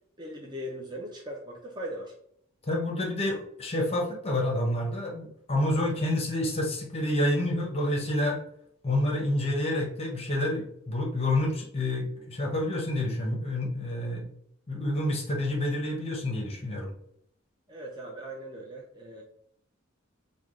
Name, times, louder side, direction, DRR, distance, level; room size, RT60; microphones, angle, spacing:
voice 1, 0.2-2.1 17.7-19.2, equal, 20° right, -1 dB, 0.4 m, -39 dB
voice 2, 2.6-8.4 8.8-14.3 14.7-16.9, left 1 dB, 30° left, 0 dB, 0.7 m, -28 dB
3.2 x 2.2 x 3.6 m, 0.71 s
head